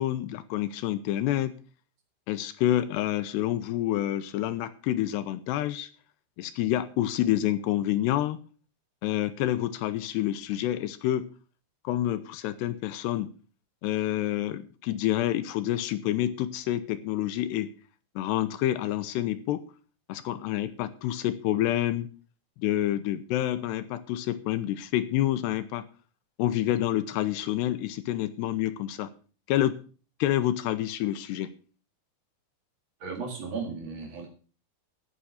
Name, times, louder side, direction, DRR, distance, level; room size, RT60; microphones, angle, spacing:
voice 1, 0.0-1.6 2.3-5.9 6.4-8.4 9.0-11.3 11.8-13.3 13.8-17.7 18.2-19.6 20.1-22.1 22.6-25.9 26.4-29.1 29.5-29.8 30.2-31.5, left 13 dB, 80° left, 12 dB, 2.7 m, -28 dB
voice 2, 33.0-34.3, right 5 dB, 45° right, 1 dB, 1.7 m, -35 dB
11.5 x 9.3 x 6.4 m, 0.38 s
omnidirectional pair, 5.3 m